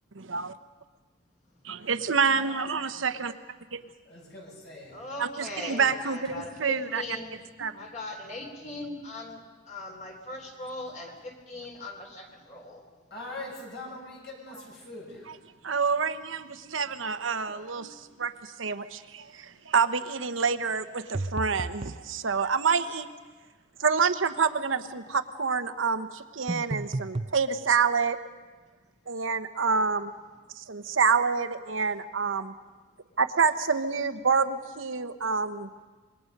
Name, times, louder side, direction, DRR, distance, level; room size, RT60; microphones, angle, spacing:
voice 1, 0.2-0.5 1.7-3.3 3.7-3.8 5.2-7.0 7.6-7.8 15.6-23.1 23.8-28.2 29.1-30.1 30.5-32.5 33.2-35.8, right 5 dB, 80° right, 10 dB, 1.0 m, -27 dB
voice 2, 4.1-4.9 13.1-15.3, left 2 dB, 60° left, -2 dB, 6.9 m, -42 dB
voice 3, 4.9-7.4 7.8-12.8, left 2 dB, 40° left, 2 dB, 3.6 m, -40 dB
sound 1, 21.1-22.0 26.5-27.4, right 2 dB, 30° right, 0.6 m, -32 dB
25.5 x 22.0 x 5.3 m, 1.3 s
head